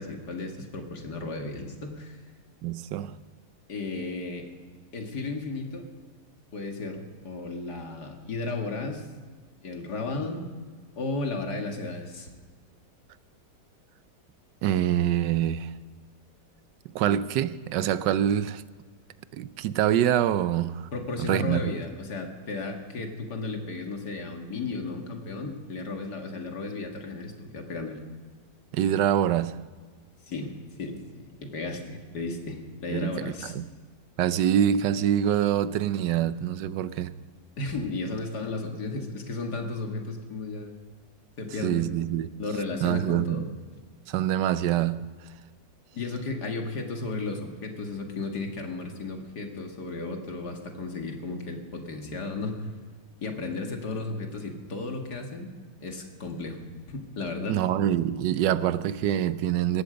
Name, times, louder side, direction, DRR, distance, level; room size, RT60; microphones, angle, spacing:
voice 1, 0.0-2.2 3.7-4.5 4.9-5.9 6.5-9.1 9.6-10.5 11.0-12.3 20.9-28.0 30.3-30.5 30.8-33.5 37.6-40.7 41.4-41.8 42.4-43.5 45.9-52.6 53.2-55.5 55.8-56.6 56.9-57.6, left 3 dB, 70° left, 2.5 m, -34 dB
voice 2, 2.6-3.2 14.6-15.7 16.9-18.6 19.3-20.9 21.2-21.7 28.7-29.6 32.9-33.7 34.2-37.2 41.6-42.3 42.8-43.5 44.1-45.1 57.5-59.8, right 10 dB, 90° right, 1.3 m, -25 dB
17.5 x 14.5 x 5.2 m
omnidirectional pair, 1.8 m